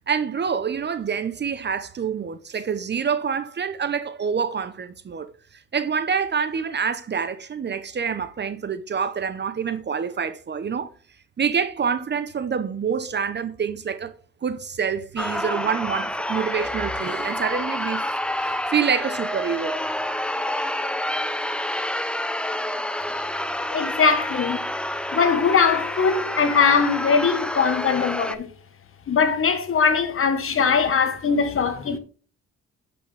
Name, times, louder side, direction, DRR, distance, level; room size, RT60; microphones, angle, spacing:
voice 1, 0.0-5.3 5.7-10.9 11.4-14.1 14.4-18.0 18.4-19.7, right 6 dB, 35° right, 0.7 m, -26 dB
sound 1, 15.2-28.4, left 1 dB, 5° left, 0.5 m, -28 dB
voice 2, 23.7-24.6 25.1-28.5 29.1-32.0, left 5 dB, 45° left, 1.2 m, -21 dB
8.0 x 6.0 x 3.3 m
cardioid pair, 90°, 30 cm